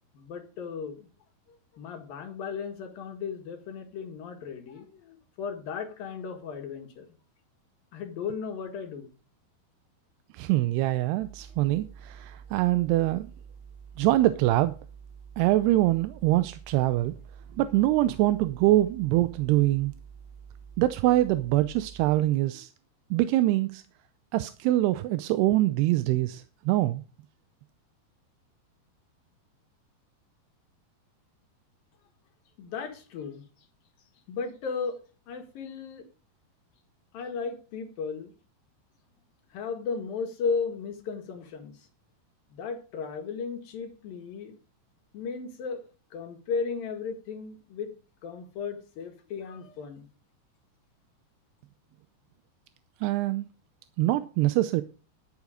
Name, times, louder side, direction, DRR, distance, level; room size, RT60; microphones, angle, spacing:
voice 1, 0.1-1.1 1.7-7.1 7.9-9.1 32.6-33.4 34.3-35.0 35.3-36.0 37.1-38.3 39.5-41.7 42.5-44.5 45.1-45.8 46.1-47.9 48.2-50.1, left 5 dB, 65° left, 3.4 m, -35 dB
voice 2, 10.4-13.3 14.0-14.7 15.4-17.1 17.6-19.9 20.8-22.7 23.1-23.8 24.3-27.0 53.0-53.5 54.0-54.8, right 16 dB, 85° right, 2.7 m, -24 dB
sound 1, 11.2-22.2, right 7 dB, 50° right, 4.6 m, -48 dB
11.5 x 8.3 x 5.0 m
omnidirectional pair, 4.6 m